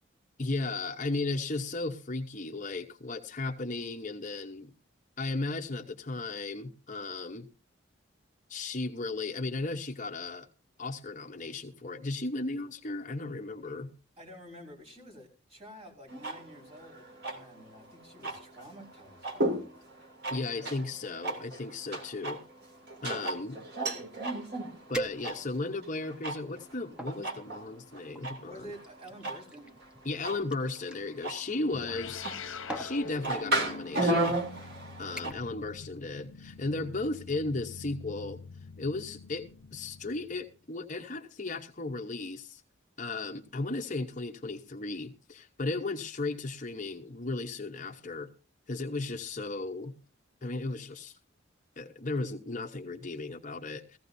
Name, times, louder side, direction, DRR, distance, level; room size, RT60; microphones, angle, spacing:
voice 1, 0.4-4.7 5.2-7.5 8.5-10.5 10.8-13.9 20.3-22.4 23.0-23.6 24.9-28.7 30.0-32.2 32.7-34.3 35.0-38.4 38.8-42.6 43.0-48.3 48.7-49.9 50.4-51.2 51.8-54.0, left 2 dB, 40° left, 0.9 m, -35 dB
voice 2, 14.2-19.7 28.4-29.7 49.0-49.1, equal, 30° right, 5.3 m, -50 dB
sound 1, 16.1-35.3, right 1 dB, 50° right, 2.7 m, -36 dB
sound 2, 24.9-25.7 26.3-27.2 28.1-31.0 32.1-32.4 32.7-33.0 33.9-34.0 34.5-34.7 35.2-35.6 35.9-36.2 36.6-36.7, right 1 dB, 5° right, 1.0 m, -41 dB
sound 3, 31.7-40.5, left 4 dB, 80° left, 0.9 m, -45 dB
18.0 x 15.5 x 2.7 m
head